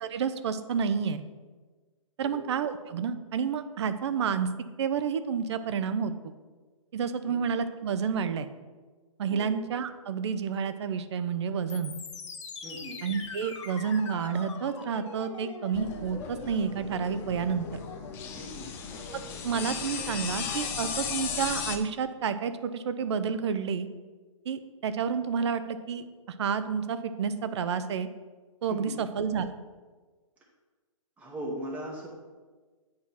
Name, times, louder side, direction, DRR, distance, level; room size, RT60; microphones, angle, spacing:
voice 1, 0.0-1.2 2.2-4.5 4.8-6.3 6.9-8.5 9.2-11.9 13.0-17.7 19.1-23.9 24.5-26.1 26.4-28.1 28.6-29.5, right 6 dB, 55° right, 11 dB, 0.5 m, -30 dB
sound 1, 11.7-21.7, left 4 dB, 60° left, 1.2 m, -44 dB
voice 2, 12.6-13.0 18.3-18.7 28.7-29.0 31.2-32.1, right 1 dB, 10° right, -3 dB, 1.0 m, -39 dB
sound 2, 15.7-21.8, left 6 dB, 15° left, 0.4 m, -36 dB
8.7 x 2.9 x 5.5 m, 1.4 s
hypercardioid pair, 145°, 17 cm